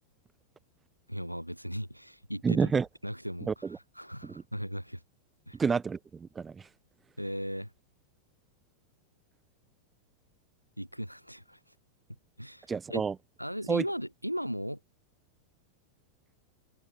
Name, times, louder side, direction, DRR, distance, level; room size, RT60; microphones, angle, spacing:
voice 1, 1.1-2.7 3.0-3.5 4.0-5.0 5.5-5.6 7.2-7.7 10.8-11.6 12.4-13.0 13.4-14.8, equal, 90° right, 3.7 m, -37 dB
voice 2, 2.4-2.9 3.5-3.8 4.2-4.4 5.5-6.7 12.7-13.2 13.7-13.8, right 5 dB, 15° right, 0.6 m, -29 dB
open air
figure-of-eight pair, 90°, 0 cm